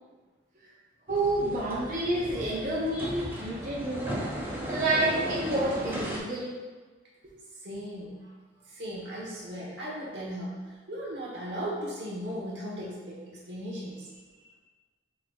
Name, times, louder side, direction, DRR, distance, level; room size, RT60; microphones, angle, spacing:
sound 1, 1.1-6.2, equal, 10° right, 0.6 m, -36 dB
voice 1, 1.1-4.2 4.7-6.5, right 1 dB, 45° right, -7 dB, 0.8 m, -29 dB
voice 2, 7.6-8.3 8.6-14.5, equal, 85° right, -4 dB, 1.2 m, -37 dB
4.5 x 3.9 x 2.4 m, 1.3 s
head